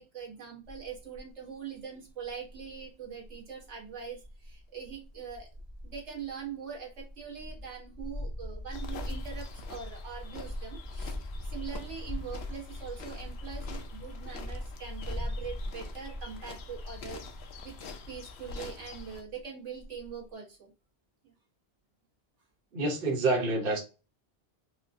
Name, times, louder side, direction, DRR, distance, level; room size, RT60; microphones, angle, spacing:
voice 1, 0.0-5.5 5.8-20.7 21.2-21.3, right 7 dB, 90° right, -2 dB, 1.6 m, -43 dB
sound 1, 0.6-1.3 1.8-1.9 2.2-18.2 18.5-19.4 19.8-20.1, left 1 dB, 35° left, 0.5 m, -41 dB
sound 2, 8.7-19.2, left 4 dB, 70° left, 0.9 m, -46 dB
voice 2, 22.7-23.8, right 2 dB, 55° right, 1 dB, 1.1 m, -27 dB
4.6 x 2.1 x 2.6 m, 0.30 s
omnidirectional pair, 1.2 m